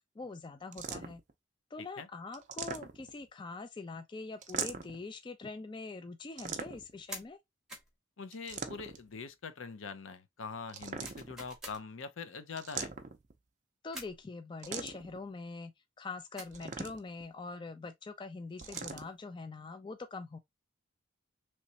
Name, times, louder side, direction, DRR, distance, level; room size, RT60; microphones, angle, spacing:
voice 1, 0.2-1.2 1.7-7.4 13.8-15.7 16.0-20.4, left 3 dB, 25° left, 0.3 m, -43 dB
sound 1, 0.7-1.3 2.3-3.2 4.4-5.0 6.4-7.0 8.3-9.1 10.7-11.5 12.6-13.3 14.6-15.2 16.5-17.2 18.6-19.1, right 6 dB, 35° right, 0.5 m, -41 dB
sound 2, 7.1-7.3 7.7-7.9 11.0-11.8 13.9-14.2 16.4-16.6 18.5-19.0, right 1 dB, 5° right, 0.9 m, -46 dB
voice 2, 8.2-12.9, left 5 dB, 75° left, 0.6 m, -43 dB
3.2 x 3.1 x 2.7 m
head